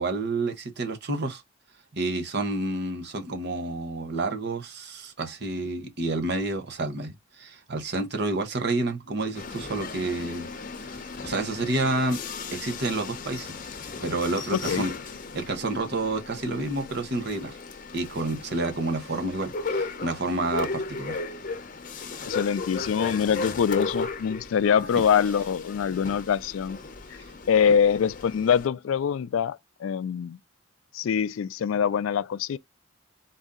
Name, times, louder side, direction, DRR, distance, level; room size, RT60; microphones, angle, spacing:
voice 1, 0.0-1.4 1.9-10.5 11.2-12.2 12.5-13.5 14.0-14.9 15.3-17.6 17.9-21.2, right 2 dB, 55° right, 1.0 m, -29 dB
sound 1, 9.3-28.7, left 3 dB, 40° left, 0.7 m, -36 dB
voice 2, 14.5-14.9 22.3-26.8 27.5-30.4 30.9-32.6, left 7 dB, 75° left, 0.3 m, -24 dB
4.1 x 2.6 x 3.7 m
head